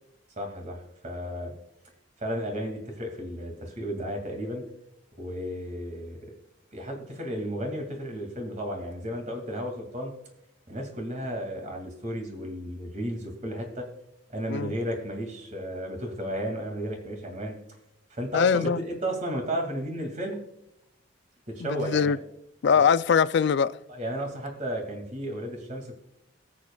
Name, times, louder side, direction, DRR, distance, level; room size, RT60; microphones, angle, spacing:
voice 1, 0.4-1.5 2.2-4.6 5.2-6.2 6.7-10.1 10.7-13.9 14.3-17.6 18.1-20.4 21.5-22.1 23.9-25.9, equal, 40° right, 2.3 m, -33 dB
voice 2, 18.3-18.8 21.6-22.2 22.6-23.7, left 6 dB, 65° left, 0.4 m, -22 dB
19.5 x 7.4 x 2.3 m
head